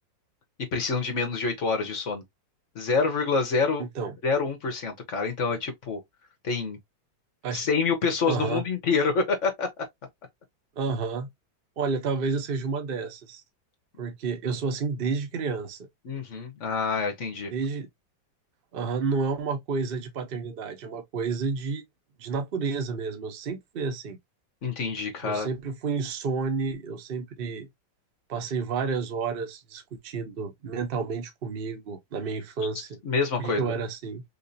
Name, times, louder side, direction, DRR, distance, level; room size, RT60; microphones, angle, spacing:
voice 1, 0.7-2.2 2.7-3.9 4.2-6.0 6.4-6.8 7.5-9.8 16.0-17.5 24.6-25.5 33.0-33.7, left 4 dB, 50° left, 1.1 m, -27 dB
voice 2, 3.8-4.1 7.4-7.7 8.3-8.6 10.8-11.3 11.8-13.4 14.0-15.8 17.5-17.9 18.7-21.8 22.2-24.2 25.2-27.7 28.3-33.0 33.4-34.2, right 5 dB, 70° right, 0.5 m, -30 dB
3.9 x 2.8 x 2.6 m
omnidirectional pair, 2.0 m